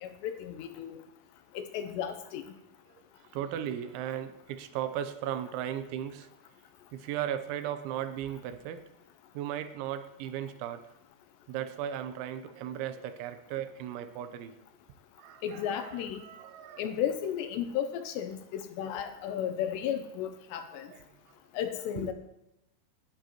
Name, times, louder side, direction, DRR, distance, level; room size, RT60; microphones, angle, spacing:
voice 1, 0.0-1.0 1.6-2.4 15.4-16.2 16.8-20.9 21.5-22.1, left 9 dB, 80° left, 8 dB, 2.7 m, -34 dB
voice 2, 3.3-6.3 6.9-8.8 9.3-10.8 11.5-14.6 15.2-15.9 16.2-16.9 19.3-19.4 20.7-21.0 22.0-22.1, right 10 dB, 85° right, 10 dB, 3.1 m, -36 dB
18.5 x 10.0 x 3.0 m, 0.88 s
omnidirectional pair, 5.3 m